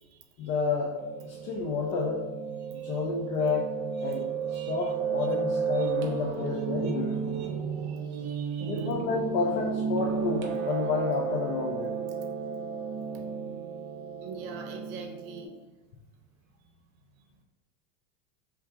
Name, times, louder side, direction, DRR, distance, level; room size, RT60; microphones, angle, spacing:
voice 1, 0.4-2.2 2.7-3.7 4.0-7.4 8.7-11.9, left 4 dB, 30° left, -3 dB, 0.4 m, -30 dB
Piano, 1.0-15.4, right 6 dB, 25° right, 0.4 m, -33 dB
voice 2, 2.6-3.0 4.0-4.2 4.5-4.9 5.7-5.9 6.8-6.9 7.3-7.5 7.8-8.9 13.1-13.2 14.2-15.5, right 4 dB, 50° right, 3 dB, 0.8 m, -46 dB
3.6 x 2.7 x 4.4 m, 1.1 s
supercardioid pair, 145°, 47 cm